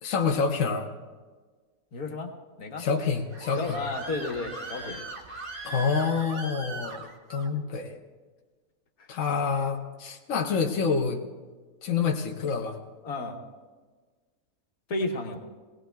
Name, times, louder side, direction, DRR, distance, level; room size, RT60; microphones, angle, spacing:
voice 1, 0.0-0.9 2.8-3.8 5.6-8.0 9.1-11.2 11.8-12.8, left 5 dB, 60° left, 2 dB, 1.2 m, -27 dB
voice 2, 1.9-2.3 2.6-2.8 3.6-5.0 9.0-9.1 13.0-13.4 14.9-15.4, left 2 dB, 80° left, 2 dB, 1.7 m, -32 dB
Screaming, 3.0-7.5, right 2 dB, 40° right, 1.3 m, -39 dB
19.5 x 18.5 x 2.3 m, 1.4 s
omnidirectional pair, 1.5 m